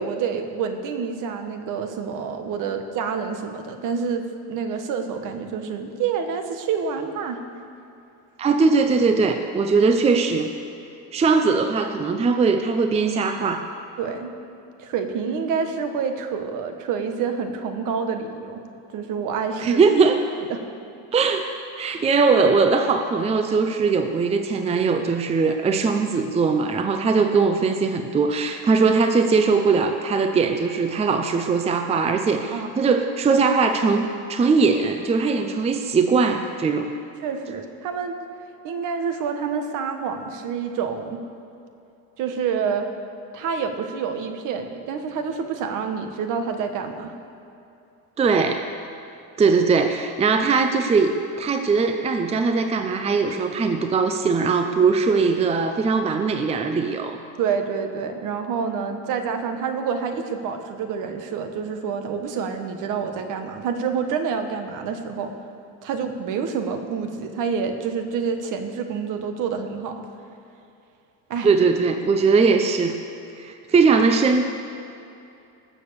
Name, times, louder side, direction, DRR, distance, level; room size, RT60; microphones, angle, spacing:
voice 1, 0.0-4.2 4.5-7.4 14.0-14.3 14.8-18.6 18.9-19.8 20.5-20.6 32.5-33.0 37.2-38.2 38.6-41.2 42.2-42.9 43.3-47.1 57.4-65.3 65.8-70.0 71.3-71.5, right 6 dB, 60° right, 6 dB, 1.5 m, -28 dB
voice 2, 8.4-10.5 11.1-13.7 19.6-20.2 21.1-21.5 21.8-36.9 48.2-48.7 49.4-57.2 71.4-73.0 73.4-74.4, right 4 dB, 20° right, 6 dB, 0.6 m, -20 dB
20.0 x 7.5 x 6.9 m, 2.7 s
cardioid pair, 135°, 36 cm